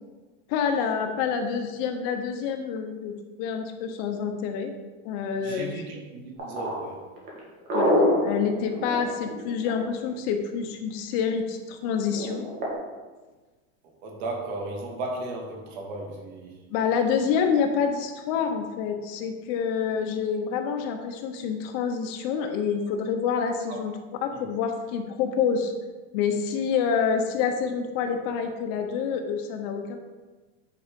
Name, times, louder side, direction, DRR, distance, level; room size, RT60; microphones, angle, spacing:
voice 1, 0.5-4.7 5.0-5.7 7.7-12.4 16.7-23.9 24.2-25.7 26.1-30.0, left 6 dB, 45° left, 5 dB, 1.0 m, -27 dB
voice 2, 5.4-7.0 14.0-16.6 23.7-23.8 24.3-24.5, right 2 dB, 55° right, 0 dB, 2.4 m, -35 dB
sound 1, 6.4-10.1 12.2-12.7, left 1 dB, 25° right, 2.5 m, -24 dB
9.4 x 4.9 x 5.2 m, 1.3 s
supercardioid pair, 165°, 37 cm